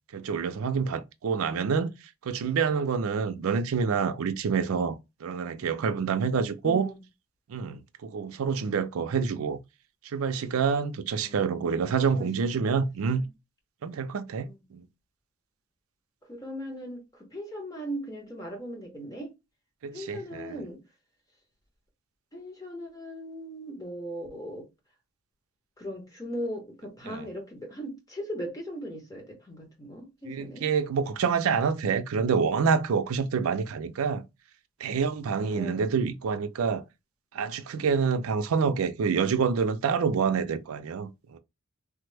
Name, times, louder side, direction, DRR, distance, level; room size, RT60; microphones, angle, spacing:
voice 1, 0.1-1.9 2.2-6.9 7.5-9.6 10.0-13.2 13.8-14.9 19.8-20.6 27.1-27.3 30.3-34.2 34.8-36.8 37.3-41.4, right 5 dB, 75° right, 0.4 m, -27 dB
voice 2, 6.6-7.0 11.2-11.5 12.1-12.6 14.4-14.6 16.3-19.3 19.9-20.8 22.3-24.7 25.8-30.7 35.5-35.9, equal, 15° left, 0.9 m, -38 dB
3.2 x 2.1 x 3.3 m
head